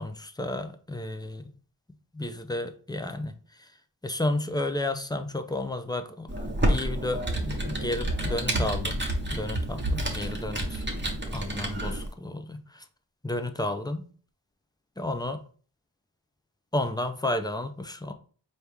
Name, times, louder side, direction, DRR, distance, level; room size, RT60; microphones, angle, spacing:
voice 1, 0.0-1.5 2.1-3.7 4.0-9.0 9.3-10.9 11.3-12.8 13.2-14.1 15.0-15.4 16.7-18.1, left 1 dB, 10° left, 7 dB, 0.5 m, -32 dB
Computer keyboard, 6.3-12.1, right 1 dB, 25° right, 1.1 m, -29 dB
4.5 x 2.8 x 3.5 m, 0.42 s
wide cardioid pair, 40°, 43 cm